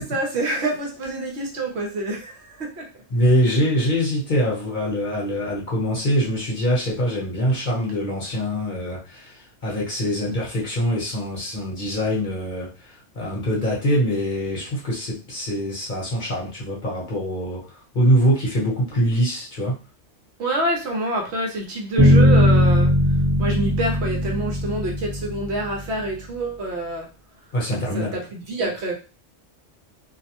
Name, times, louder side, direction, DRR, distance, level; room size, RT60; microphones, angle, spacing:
voice 1, 0.0-2.9 20.4-27.1 27.9-28.9, right 1 dB, 65° right, 0 dB, 1.0 m, -27 dB
voice 2, 3.1-19.7 27.5-28.1, equal, 45° left, -4 dB, 1.0 m, -23 dB
Bass guitar, 22.0-25.9, left 1 dB, 20° right, 0.9 m, -18 dB
2.6 x 2.1 x 2.8 m, 0.32 s
omnidirectional pair, 1.2 m